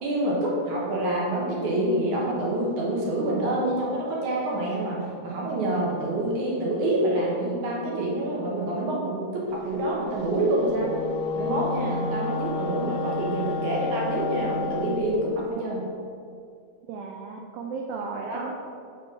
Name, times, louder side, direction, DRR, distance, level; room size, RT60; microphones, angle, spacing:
voice 1, 0.0-10.9 11.4-15.9 18.1-18.5, right 1 dB, 65° right, -4 dB, 2.3 m, -27 dB
Wind instrument woodwind instrument, 10.6-15.1, left 4 dB, 85° left, 2.2 m, -30 dB
voice 2, 16.9-18.6, right 4 dB, 90° right, 2 dB, 1.9 m, -35 dB
6.2 x 5.2 x 5.4 m, 2.3 s
omnidirectional pair, 4.6 m